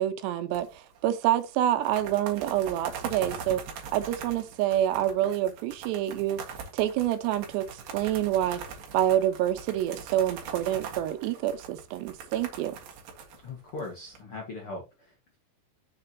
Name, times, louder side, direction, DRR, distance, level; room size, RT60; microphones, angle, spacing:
voice 1, 0.0-3.6 3.9-6.4 6.7-8.6 8.9-12.7, right 12 dB, 90° right, 3.0 m, -27 dB
sound 1, 0.5-1.0 1.2-1.3 1.7-14.2, right 6 dB, 60° right, 2.9 m, -41 dB
voice 2, 13.4-15.4, left 2 dB, 70° left, 1.3 m, -40 dB
6.9 x 6.8 x 2.8 m
omnidirectional pair, 4.8 m